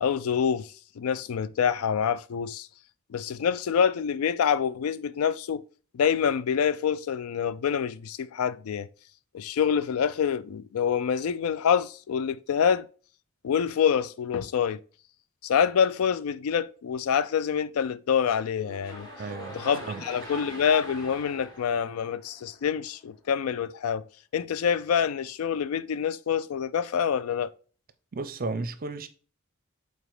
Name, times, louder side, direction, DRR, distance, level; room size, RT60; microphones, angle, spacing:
voice 1, 0.0-2.7 3.1-5.6 5.9-8.9 9.3-12.9 13.4-14.8 15.4-19.1 19.5-24.0 24.3-27.5, left 7 dB, 85° left, 0.4 m, -26 dB
sound 1, 18.6-22.8, right 1 dB, 20° left, 1.4 m, -42 dB
voice 2, 19.2-20.0 28.1-29.1, right 3 dB, 45° right, 0.6 m, -34 dB
5.0 x 3.9 x 4.7 m
head